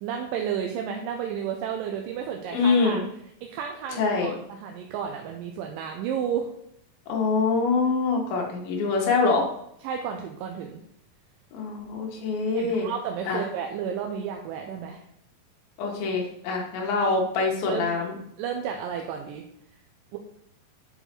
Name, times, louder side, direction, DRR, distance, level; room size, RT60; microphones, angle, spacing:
voice 1, 0.0-3.0 3.4-6.5 9.8-10.8 12.5-15.0 17.6-17.9 18.4-19.4 20.1-20.2, right 8 dB, 80° right, 3 dB, 2.1 m, -32 dB
voice 2, 2.5-3.0 4.0-4.3 7.1-9.5 11.5-12.9 13.3-13.4 15.8-18.1, left 4 dB, 80° left, 0 dB, 3.0 m, -24 dB
7.1 x 4.6 x 4.3 m, 0.73 s
omnidirectional pair, 4.2 m